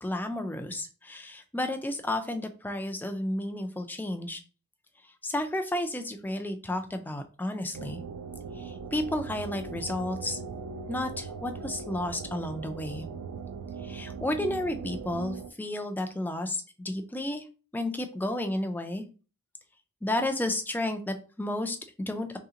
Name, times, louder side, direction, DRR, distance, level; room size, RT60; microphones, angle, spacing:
voice 1, 0.0-4.4 5.2-8.0 8.6-10.4 10.9-13.1 13.8-17.4 17.7-19.0 20.0-22.3, left 1 dB, 10° left, 6 dB, 0.4 m, -32 dB
sound 1, 7.7-15.5, right 5 dB, 80° right, 0.4 m, -39 dB
3.2 x 2.9 x 3.7 m, 0.36 s
head